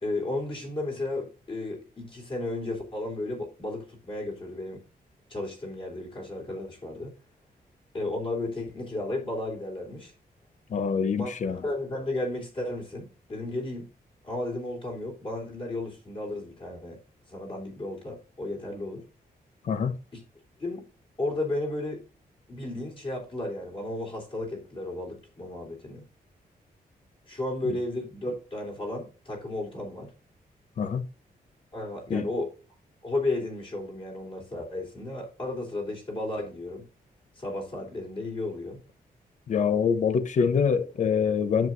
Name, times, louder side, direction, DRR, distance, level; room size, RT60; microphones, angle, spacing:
voice 1, 0.0-4.8 5.3-7.2 7.9-10.1 11.2-13.9 14.2-17.0 17.3-19.0 20.1-20.2 20.6-20.9 21.2-22.0 22.5-26.0 27.3-30.1 31.7-32.5 33.0-36.8 37.4-38.8 40.4-40.5, left 2 dB, 35° left, 3.6 m, -33 dB
voice 2, 10.7-11.6 19.6-19.9 27.6-27.8 30.8-31.0 32.1-32.3 39.5-41.7, left 6 dB, 50° left, 0.8 m, -25 dB
10.5 x 7.8 x 2.6 m
wide cardioid pair, 180°, 16 cm